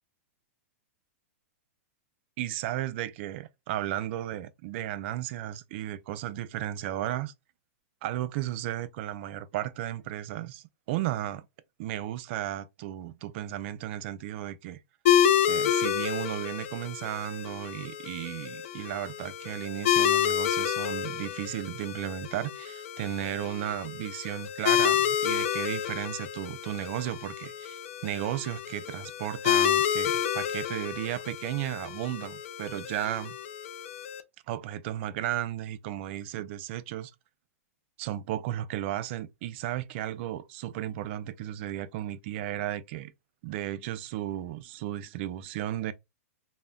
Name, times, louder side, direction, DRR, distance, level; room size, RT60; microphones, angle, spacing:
voice 1, 2.4-7.3 8.0-11.5 11.8-14.8 15.5-33.4 34.5-37.1 38.0-43.1 43.4-45.9, right 13 dB, 50° right, 0.3 m, -34 dB
sound 1, 15.1-34.2, left 9 dB, 65° left, 0.4 m, -29 dB
2.1 x 2.1 x 3.5 m
hypercardioid pair, 135°, 8 cm